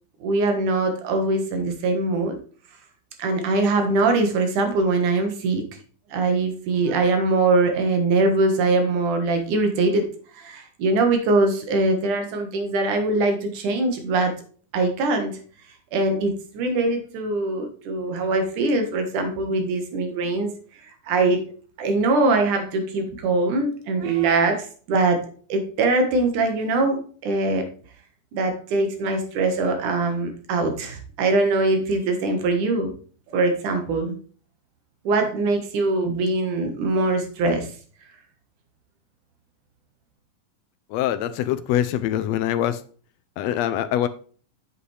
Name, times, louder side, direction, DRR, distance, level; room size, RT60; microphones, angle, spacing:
voice 1, 0.2-2.4 3.2-5.6 6.1-10.1 10.3-14.3 14.7-15.4 15.9-20.5 21.1-21.4 21.8-25.2 25.5-27.6 28.3-32.9 33.3-34.2 35.0-37.7, right 2 dB, 75° right, 2.9 m, -22 dB
voice 2, 40.9-42.8 43.4-44.1, left 11 dB, 80° left, 1.5 m, -24 dB
8.2 x 7.8 x 3.3 m
omnidirectional pair, 3.6 m